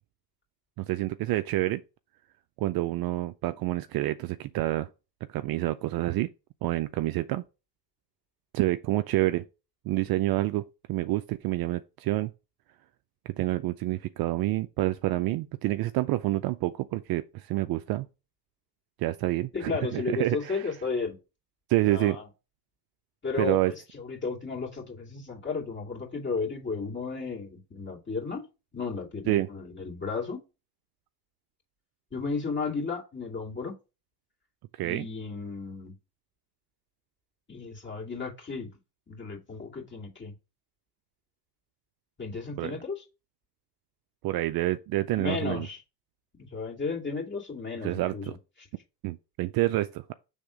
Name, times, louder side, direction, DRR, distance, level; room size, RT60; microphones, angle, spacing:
voice 1, 0.8-1.8 2.6-4.9 5.3-6.3 6.6-7.4 8.5-9.4 9.9-12.3 13.3-18.1 19.0-20.7 21.7-22.2 23.4-23.7 29.3-29.5 34.8-35.1 42.6-42.8 44.2-45.7 47.8-48.3 49.0-50.1, right 17 dB, 50° right, 0.4 m, -28 dB
voice 2, 19.5-21.2 21.8-22.3 23.2-28.4 28.7-30.4 32.1-33.8 34.8-36.0 37.5-38.7 39.1-40.3 42.2-43.0 45.2-45.8 46.4-48.4, left 4 dB, 25° left, 2.5 m, -34 dB
6.4 x 3.5 x 4.9 m
supercardioid pair, 95°, 49 cm